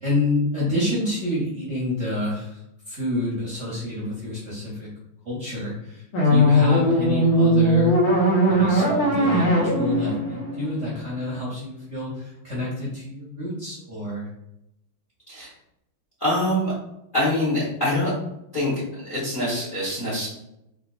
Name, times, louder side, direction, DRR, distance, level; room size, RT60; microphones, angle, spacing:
voice 1, 0.0-2.6 2.9-4.9 5.2-8.0 8.5-14.3, left 1 dB, 60° right, -7 dB, 0.7 m, -28 dB
sound 1, 6.1-11.3, equal, 90° left, 1.8 m, -19 dB
voice 2, 16.2-16.7 17.1-18.1 18.5-18.7 19.0-20.3, left 1 dB, 50° left, -7 dB, 0.6 m, -24 dB
3.9 x 2.5 x 2.3 m, 0.83 s
omnidirectional pair, 2.2 m